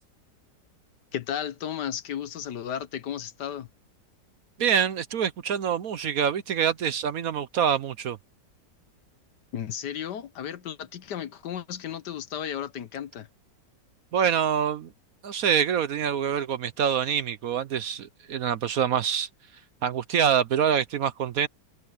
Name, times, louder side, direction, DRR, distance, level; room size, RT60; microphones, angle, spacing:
voice 1, 1.1-3.7 9.5-13.3, left 9 dB, 70° left, 1.6 m, -34 dB
voice 2, 4.6-8.2 14.1-14.9 15.2-19.3 19.8-21.5, right 8 dB, 60° right, 1.1 m, -25 dB
omnidirectional pair, 1.9 m